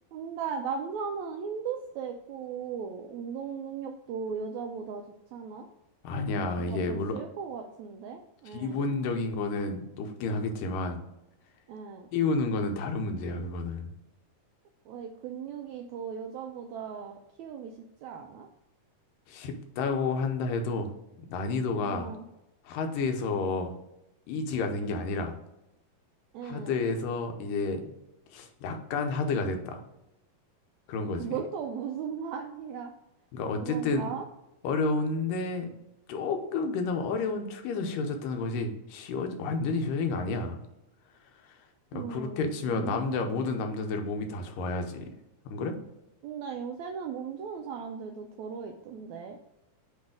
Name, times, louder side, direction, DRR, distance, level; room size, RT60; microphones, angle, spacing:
voice 1, 0.1-5.0 5.3-5.7 6.5-8.8 11.7-12.1 14.8-18.5 21.9-22.3 26.3-26.8 31.1-32.9 33.6-34.2 41.9-43.2 46.2-49.4, right 6 dB, 85° right, 3 dB, 1.6 m, -37 dB
voice 2, 6.0-7.1 8.5-11.0 12.1-13.9 19.3-20.9 21.3-22.1 22.7-23.7 24.3-25.4 26.4-27.8 28.3-29.8 30.9-31.4 33.3-34.1 34.6-35.7 36.1-40.6 41.9-45.1 45.5-45.8, left 3 dB, 85° left, 5 dB, 2.4 m, -30 dB
7.9 x 3.2 x 5.0 m, 0.88 s
omnidirectional pair, 3.9 m